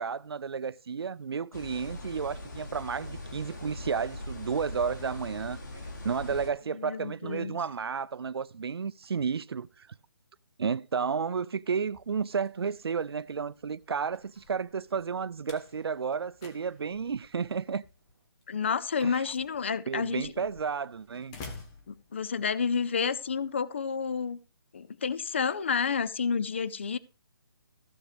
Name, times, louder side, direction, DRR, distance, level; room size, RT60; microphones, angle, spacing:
voice 1, 0.0-5.6 6.0-9.9 10.6-17.8 19.0-19.2 19.9-21.3, right 6 dB, 90° right, 0.5 m, -32 dB
sound 1, 1.5-6.5, left 1 dB, 50° left, 3.2 m, -41 dB
voice 2, 6.8-7.6 18.5-20.3 21.9-24.4 24.7-27.0, left 6 dB, 30° left, 0.5 m, -30 dB
Slam, 11.8-22.7, left 3 dB, 10° left, 0.9 m, -52 dB
15.0 x 6.3 x 5.0 m
hypercardioid pair, 175°, 13 cm